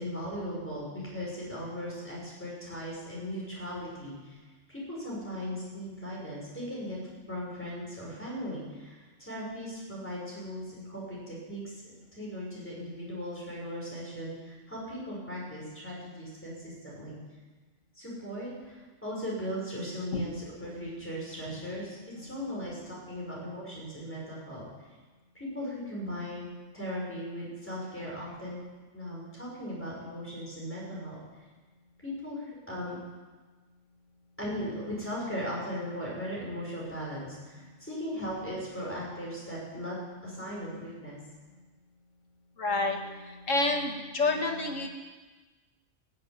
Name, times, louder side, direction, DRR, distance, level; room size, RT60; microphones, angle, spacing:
voice 1, 0.0-4.4 4.7-7.0 7.3-17.2 17.9-24.6 25.3-26.4 26.7-28.6 28.9-31.2 32.0-33.0 34.4-40.0 40.2-41.2, equal, 10° left, -5 dB, 6.7 m, -38 dB
voice 2, 42.6-44.9, left 3 dB, 85° left, 2 dB, 2.2 m, -29 dB
16.5 x 8.7 x 9.5 m, 1.3 s
omnidirectional pair, 1.3 m